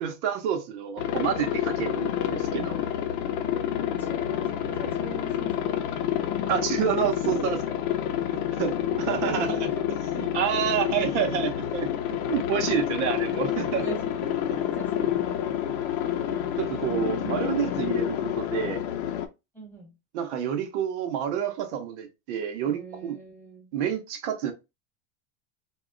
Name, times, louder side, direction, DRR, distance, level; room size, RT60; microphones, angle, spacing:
voice 1, 0.0-2.8 6.5-7.6 8.3-9.7 10.1-11.9 12.3-13.8 15.0-15.1 15.6-15.8 16.2-18.8 20.1-23.2 23.7-24.5, right 9 dB, 70° right, 0.7 m, -29 dB
Aircraft, 1.0-19.3, left 10 dB, 70° left, 0.6 m, -28 dB
voice 2, 3.9-6.0 8.2-8.6 8.9-10.0 10.5-10.6 13.8-15.6 19.5-19.9 22.7-23.7, right 2 dB, 5° left, 0.8 m, -41 dB
2.3 x 2.0 x 3.6 m
supercardioid pair, 140°, 35 cm